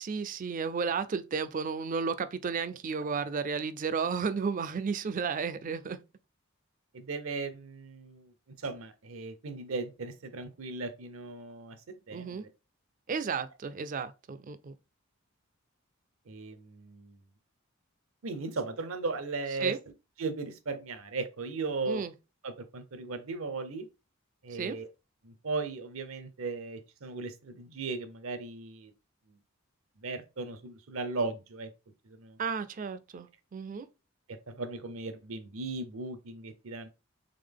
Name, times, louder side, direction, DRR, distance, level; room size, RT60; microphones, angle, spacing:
voice 1, 0.0-6.0 12.1-12.5 13.1-14.7 19.6-19.8 21.9-22.1 24.5-24.8 32.4-33.9, right 5 dB, 40° right, 0.3 m, -33 dB
voice 2, 6.9-8.3 8.6-11.8 12.1-12.5 16.3-17.2 18.2-19.7 20.2-22.0 22.4-23.9 24.4-24.9 25.2-28.9 29.3-29.4 30.0-31.7 32.1-32.4 34.3-36.9, right 3 dB, 75° right, 0.7 m, -37 dB
3.8 x 3.4 x 3.4 m
head